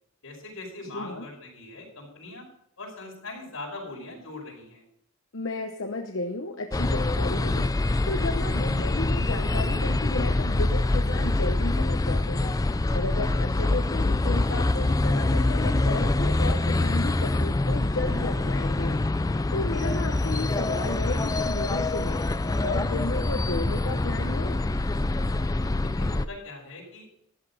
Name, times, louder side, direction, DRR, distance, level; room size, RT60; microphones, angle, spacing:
voice 1, 0.2-2.4 2.8-4.8 25.8-27.1, left 2 dB, 90° left, -1 dB, 5.5 m, -41 dB
voice 2, 0.9-1.3 5.3-12.5 12.9-22.2 22.6-24.6, left 2 dB, 65° left, 3 dB, 1.0 m, -33 dB
sound 1, 6.7-26.2, left 2 dB, 15° left, 0.4 m, -25 dB
13.5 x 11.5 x 4.2 m, 0.73 s
head